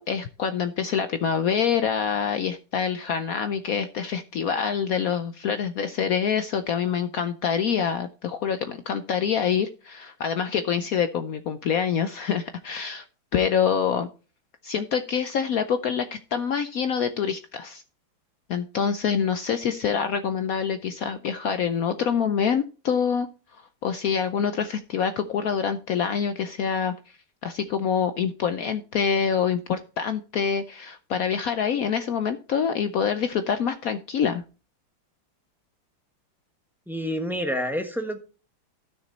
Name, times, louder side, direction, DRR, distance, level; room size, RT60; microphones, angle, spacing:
voice 1, 0.0-13.0 13.3-14.1 14.6-16.1 16.3-17.8 18.5-23.3 23.8-26.9 27.4-34.4, left 7 dB, 75° left, 10 dB, 0.8 m, -26 dB
voice 2, 36.9-38.2, equal, ahead, 5 dB, 0.9 m, -28 dB
12.5 x 6.3 x 4.0 m, 0.34 s
omnidirectional pair, 2.2 m